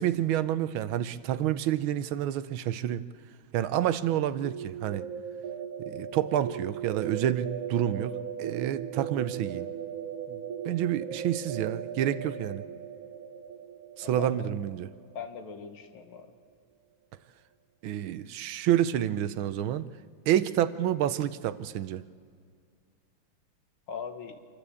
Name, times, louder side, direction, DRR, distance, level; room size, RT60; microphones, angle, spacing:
voice 1, 0.0-3.0 3.5-5.0 5.8-8.1 8.4-9.7 10.3-12.6 14.0-14.9 17.8-19.9 20.3-22.0, right 11 dB, 80° right, 15 dB, 1.5 m, -28 dB
sound 1, 4.4-16.2, right 8 dB, 55° right, 1.1 m, -38 dB
voice 2, 14.0-14.5 15.1-16.3 23.9-24.4, left 5 dB, 85° left, 5 dB, 2.2 m, -40 dB
27.0 x 12.0 x 8.4 m, 2.2 s
omnidirectional pair, 2.2 m